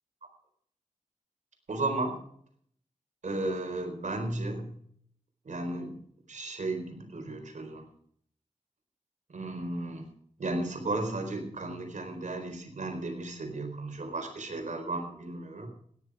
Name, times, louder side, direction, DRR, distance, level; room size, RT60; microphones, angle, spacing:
voice 1, 1.7-2.2 3.2-4.7 5.4-6.0 6.3-7.8 9.3-10.1 10.4-15.7, right 2 dB, 65° right, 3 dB, 4.4 m, -34 dB
17.0 x 10.5 x 4.9 m, 0.64 s
wide cardioid pair, 100°, 13 cm